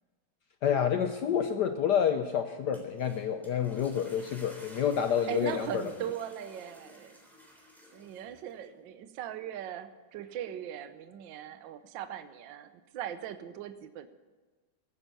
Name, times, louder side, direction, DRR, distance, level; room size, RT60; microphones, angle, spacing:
voice 1, 0.6-5.8, left 8 dB, 65° left, 7 dB, 1.2 m, -28 dB
sound 1, 2.6-8.6, equal, ahead, 3.4 m, -54 dB
voice 2, 5.3-7.2 7.9-14.1, right 10 dB, 70° right, 11 dB, 1.4 m, -39 dB
15.5 x 9.9 x 6.9 m, 1.3 s
omnidirectional pair, 2.3 m